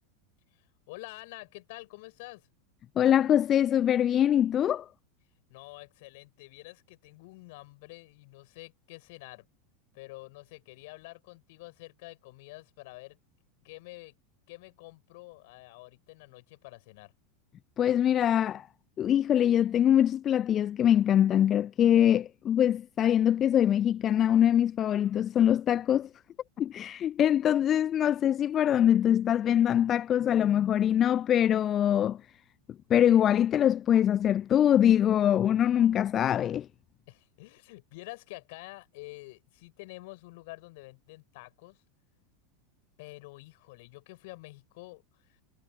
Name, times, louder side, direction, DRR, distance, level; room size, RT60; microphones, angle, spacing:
voice 1, 0.5-2.5 5.5-9.5 9.9-13.2 13.6-14.1 14.5-17.1 37.1-41.8 43.0-45.4, left 23 dB, 55° left, 7.9 m, -48 dB
voice 2, 3.0-4.9 17.8-18.7 19.0-26.1 26.6-32.2 32.9-36.7, left 10 dB, 35° left, 0.3 m, -23 dB
figure-of-eight pair, 85°, 0 cm